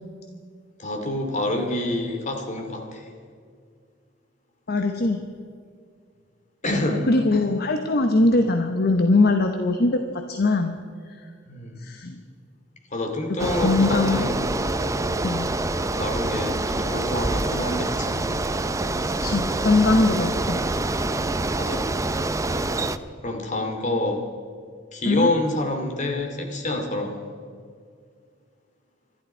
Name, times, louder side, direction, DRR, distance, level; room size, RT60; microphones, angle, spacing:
voice 1, 0.8-3.1 6.6-7.1 11.5-11.8 12.9-14.5 16.0-18.2 21.6-21.9 22.3-22.8 23.2-24.3 24.9-27.2, left 1 dB, 40° left, 4 dB, 2.6 m, -27 dB
voice 2, 4.7-5.2 7.1-10.0 10.3-10.7 11.8-12.2 13.5-14.3 15.2-15.5 19.2-20.6 25.1-25.3, left 2 dB, 55° left, 5 dB, 1.0 m, -21 dB
Bicycle, 13.4-23.0, right 2 dB, 15° right, 0.6 m, -26 dB
25.5 x 12.0 x 4.5 m, 2.2 s
head